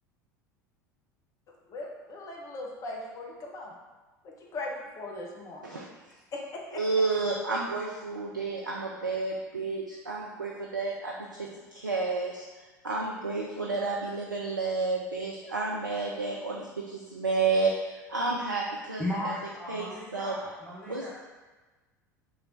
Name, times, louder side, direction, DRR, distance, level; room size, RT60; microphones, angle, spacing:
voice 1, 1.7-3.8 4.2-5.8 6.3-6.8 9.9-10.1, left 2 dB, 35° left, -1 dB, 0.9 m, -39 dB
voice 2, 6.7-12.5 12.8-19.3 19.7-20.4 20.9-21.1, right 3 dB, 85° right, -2 dB, 0.4 m, -31 dB
voice 3, 19.0-21.1, left 1 dB, 5° left, -10 dB, 1.1 m, -35 dB
3.2 x 3.1 x 3.8 m, 1.2 s
figure-of-eight pair, 70°, 10 cm